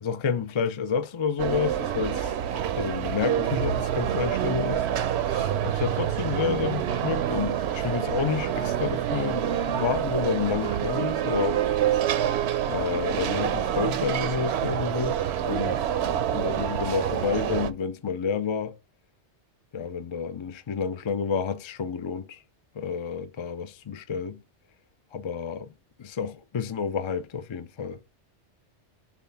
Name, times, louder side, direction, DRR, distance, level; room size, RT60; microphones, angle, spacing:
voice 1, 0.0-2.3 2.8-4.8 5.3-11.9 12.7-15.8 16.3-18.7 19.7-22.4 22.7-24.4 25.1-25.7 26.0-28.0, left 6 dB, 45° left, 0.3 m, -30 dB
sound 1, 1.4-17.7, right 10 dB, 70° right, 0.8 m, -27 dB
7.1 x 2.4 x 5.5 m
omnidirectional pair, 1.2 m